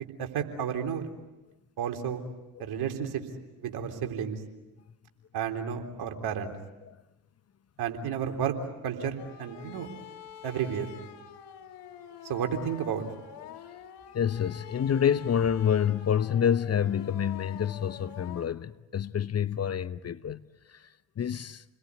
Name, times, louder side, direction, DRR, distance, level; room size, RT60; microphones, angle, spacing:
voice 1, 0.2-1.0 1.8-2.2 2.6-3.2 3.6-4.4 5.3-6.5 7.8-8.6 8.8-9.9 10.4-10.9 12.2-13.0, right 8 dB, 60° right, 3.7 m, -32 dB
sound 1, 9.2-18.5, left 9 dB, 70° left, 2.9 m, -46 dB
voice 2, 14.1-20.9 21.2-21.6, left 8 dB, 35° left, 1.0 m, -28 dB
29.5 x 21.0 x 9.7 m
hypercardioid pair, 60°, 44 cm